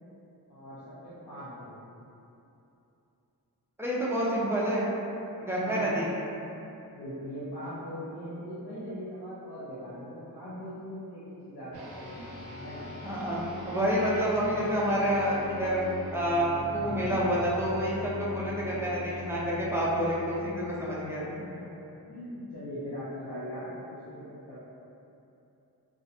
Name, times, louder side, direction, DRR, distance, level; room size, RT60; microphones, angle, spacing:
voice 1, 0.5-2.0 5.6-5.9 6.9-12.8 16.8-17.4 21.4-24.6, equal, 90° left, -11 dB, 0.6 m, -41 dB
voice 2, 3.8-4.8 5.4-6.1 13.0-13.4 13.7-15.8 16.1-21.4, equal, 5° right, -7 dB, 0.4 m, -28 dB
sound 1, 11.7-21.4, left 1 dB, 80° right, 0.5 m, -42 dB
2.3 x 2.1 x 2.6 m, 2.8 s
wide cardioid pair, 120°, 38 cm